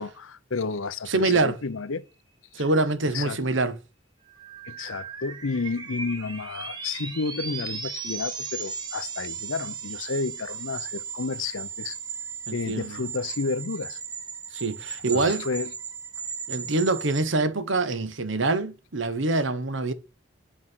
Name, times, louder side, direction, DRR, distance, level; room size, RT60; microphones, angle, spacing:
voice 1, 0.0-2.0 2.6-2.7 3.1-3.4 4.7-12.0 12.5-14.0 15.1-15.7, left 4 dB, 90° left, 0.7 m, -31 dB
voice 2, 1.1-1.6 2.5-3.8 12.5-13.0 14.5-15.5 16.5-19.9, right 3 dB, 75° right, 1.2 m, -25 dB
sound 1, 4.2-17.2, right 6 dB, 20° right, 1.4 m, -36 dB
9.0 x 6.0 x 6.2 m
head